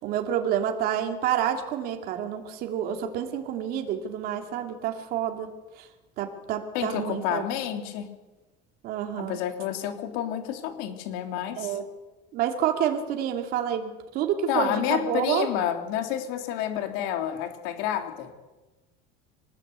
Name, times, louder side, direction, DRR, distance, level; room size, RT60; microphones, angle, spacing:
voice 1, 0.0-5.5 5.8-5.9 6.2-7.4 8.8-9.4 11.6-11.8 12.3-15.5, right 9 dB, 50° right, 4 dB, 2.8 m, -28 dB
voice 2, 6.7-8.1 9.2-11.8 14.5-18.3, left 10 dB, 75° left, 5 dB, 3.6 m, -29 dB
25.0 x 20.0 x 8.3 m, 1.2 s
cardioid pair, 170°, 20 cm